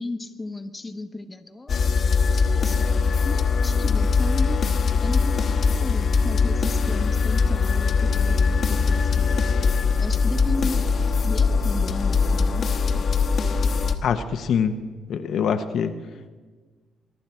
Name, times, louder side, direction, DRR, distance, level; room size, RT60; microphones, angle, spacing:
voice 1, 0.0-1.9 2.3-2.8 3.0-4.6 5.0-9.6 10.0-12.6, left 2 dB, 20° left, 7 dB, 1.0 m, -35 dB
sound 1, 1.7-14.0, left 5 dB, 50° left, 1.1 m, -21 dB
voice 2, 14.0-14.8 15.1-15.9, left 7 dB, 70° left, 8 dB, 0.8 m, -24 dB
22.0 x 11.5 x 4.4 m, 1.4 s
cardioid pair, 90°, 0 cm